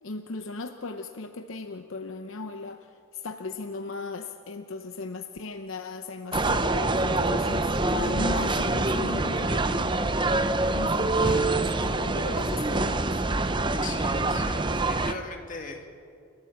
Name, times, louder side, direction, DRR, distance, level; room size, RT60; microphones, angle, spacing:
voice 1, 0.0-10.5 10.7-13.2, left 3 dB, 70° left, 7 dB, 0.8 m, -37 dB
sound 1, 6.3-15.1, right 2 dB, 20° right, 0.7 m, -25 dB
voice 2, 13.8-15.9, left 4 dB, 40° left, 3 dB, 2.1 m, -40 dB
29.0 x 13.5 x 7.2 m, 2.4 s
head